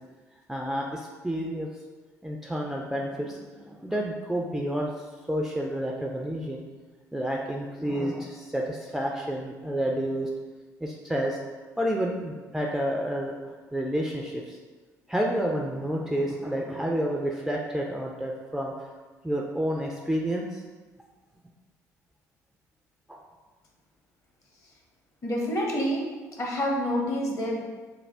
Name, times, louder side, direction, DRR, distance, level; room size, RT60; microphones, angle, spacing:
voice 1, 0.5-1.7 2.2-4.9 5.3-6.6 7.1-10.3 10.8-11.4 11.8-13.3 13.7-14.6 15.1-18.9 19.2-20.6 23.1-23.2, equal, 5° right, -1 dB, 0.4 m, -29 dB
voice 2, 25.2-27.6, equal, 35° left, -1 dB, 1.0 m, -28 dB
3.2 x 2.3 x 4.3 m, 1.3 s
hypercardioid pair, 55°, 9 cm